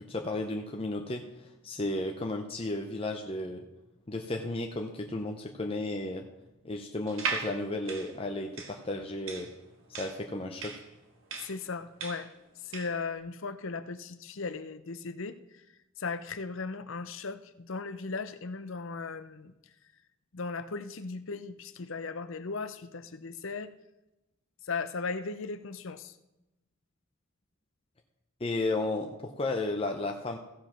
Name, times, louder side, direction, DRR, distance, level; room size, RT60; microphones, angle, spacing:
voice 1, 0.0-3.6 4.1-6.2 6.6-9.5 9.9-10.8 28.4-30.4, left 2 dB, 25° left, 3 dB, 0.7 m, -33 dB
sound 1, 7.1-13.0, right 5 dB, 65° right, 1.5 m, -38 dB
voice 2, 11.4-12.3 12.6-15.6 16.0-19.5 20.3-23.7 24.6-26.1, left 4 dB, 65° left, 12 dB, 0.7 m, -37 dB
15.0 x 5.1 x 5.8 m, 0.95 s
head